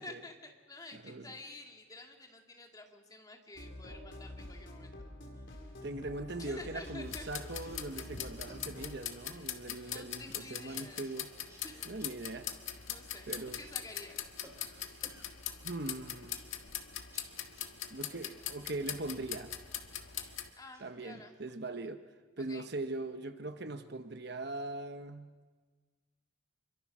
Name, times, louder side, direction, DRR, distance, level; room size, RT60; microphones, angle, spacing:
voice 1, 0.0-4.9 5.4-5.5 6.4-7.3 9.8-11.1 11.6-12.0 12.9-14.2 20.6-21.3 22.5-22.7, left 2 dB, 20° left, 2 dB, 2.1 m, -50 dB
voice 2, 0.9-1.3 5.8-11.3 11.9-12.5 13.3-13.6 14.6-15.0 15.6-16.4 17.9-19.5 20.8-22.0 22.4-25.3, right 2 dB, 55° right, 8 dB, 1.0 m, -41 dB
sound 1, 3.5-9.0, left 1 dB, 60° left, 4.3 m, -47 dB
sound 2, 6.8-9.7 9.9-11.2 11.5-15.3 15.6-18.6 18.9-19.2 19.7-20.4 20.7-21.5, right 1 dB, 15° right, 3.6 m, -61 dB
sound 3, 7.0-20.5, left 10 dB, 75° left, 1.7 m, -42 dB
26.5 x 24.0 x 6.2 m, 1.5 s
head